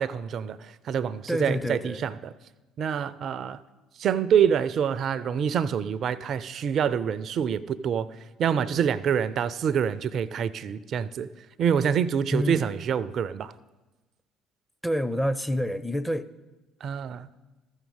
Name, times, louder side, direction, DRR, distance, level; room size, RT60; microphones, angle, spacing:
voice 1, 0.0-2.3 2.8-3.6 4.0-8.1 8.4-11.3 11.6-13.5 16.8-17.3, right 8 dB, 50° right, 0.4 m, -26 dB
voice 2, 1.3-2.0 12.3-12.7 14.8-16.3, equal, 5° left, 0.5 m, -28 dB
13.5 x 7.2 x 5.4 m
figure-of-eight pair, 55°, 0 cm